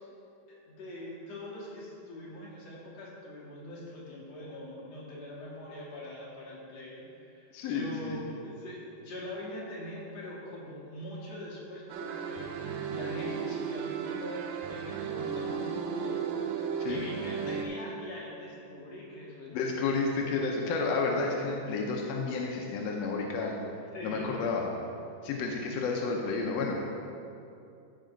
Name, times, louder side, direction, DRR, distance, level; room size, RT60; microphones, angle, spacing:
voice 1, 0.5-16.2 16.9-20.3 23.9-24.4, left 1 dB, 55° left, -6 dB, 3.1 m, -43 dB
voice 2, 7.5-8.2 16.8-17.0 19.5-23.5 23.8-24.7 25.2-26.8, left 4 dB, 75° left, 0 dB, 1.5 m, -31 dB
sound 1, 11.9-17.7, right 6 dB, 75° right, 1.9 m, -35 dB
14.5 x 5.4 x 4.0 m, 2.6 s
omnidirectional pair, 3.8 m